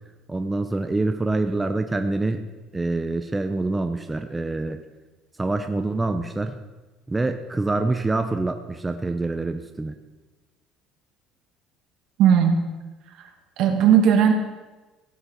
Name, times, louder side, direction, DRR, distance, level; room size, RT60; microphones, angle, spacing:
voice 1, 0.3-2.5 2.7-4.8 5.4-6.5 7.1-9.9, right 2 dB, 10° right, 7 dB, 0.6 m, -26 dB
voice 2, 12.2-12.6 13.6-14.3, right 8 dB, 65° right, 4 dB, 2.2 m, -16 dB
16.5 x 8.0 x 6.4 m, 1.2 s
cardioid pair, 150°, 0 cm